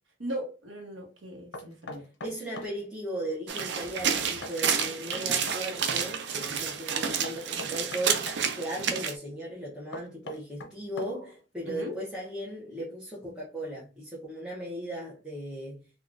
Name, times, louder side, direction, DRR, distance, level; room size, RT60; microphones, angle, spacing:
voice 1, 0.2-2.1 11.6-12.0, equal, 85° right, 1.1 m, -38 dB
Knock, 1.5-2.8 4.4-5.6 7.2-8.4 9.9-11.4, left 2 dB, 70° left, 0.6 m, -41 dB
voice 2, 2.2-15.8, right 1 dB, 5° right, 0.8 m, -37 dB
sound 1, 3.5-9.1, right 7 dB, 65° right, 0.4 m, -30 dB
3.6 x 2.3 x 2.5 m
head